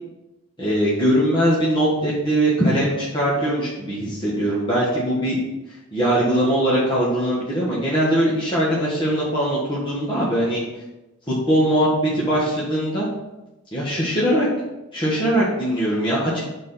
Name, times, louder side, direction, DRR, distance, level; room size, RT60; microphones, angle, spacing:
voice 1, 0.6-5.4 5.9-10.6 11.3-11.9 12.1-13.1 13.7-14.5 14.9-16.4, right 1 dB, 20° left, -8 dB, 1.6 m, -21 dB
6.0 x 4.5 x 5.8 m, 1.0 s
head